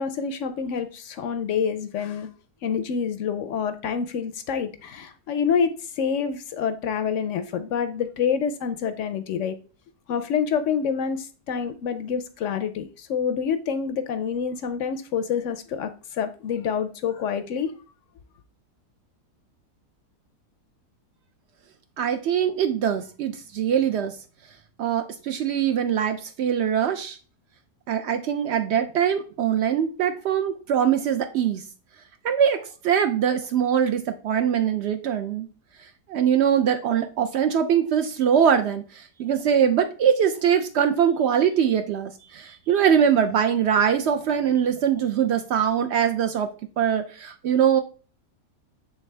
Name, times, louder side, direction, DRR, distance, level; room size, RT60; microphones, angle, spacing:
voice 1, 0.0-2.3 2.6-9.6 10.1-17.7, left 7 dB, 70° left, 0.7 m, -27 dB
voice 2, 22.0-24.2 24.8-27.2 27.9-31.6 32.2-35.5 35.8-46.5 46.8-47.8, right 8 dB, 90° right, 0.5 m, -22 dB
8.4 x 3.5 x 3.2 m
omnidirectional pair, 1.7 m